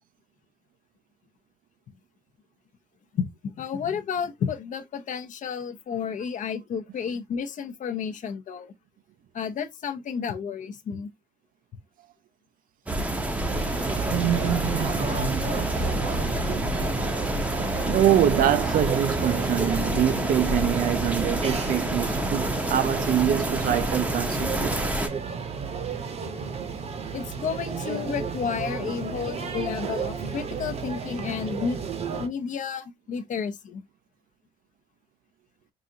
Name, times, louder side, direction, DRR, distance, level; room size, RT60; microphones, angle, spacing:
voice 1, 3.5-8.7 9.3-11.1 27.1-31.9 32.1-33.8, left 6 dB, 50° left, 0.7 m, -31 dB
sound 1, 12.9-25.1, right 1 dB, 10° right, 0.7 m, -28 dB
sound 2, 13.5-32.3, right 5 dB, 40° right, 0.8 m, -33 dB
voice 2, 14.1-15.5 16.5-16.9 17.9-24.9 26.7-26.8, right 11 dB, 55° right, 0.5 m, -25 dB
4.9 x 2.5 x 2.7 m
cardioid pair, 110°, 17 cm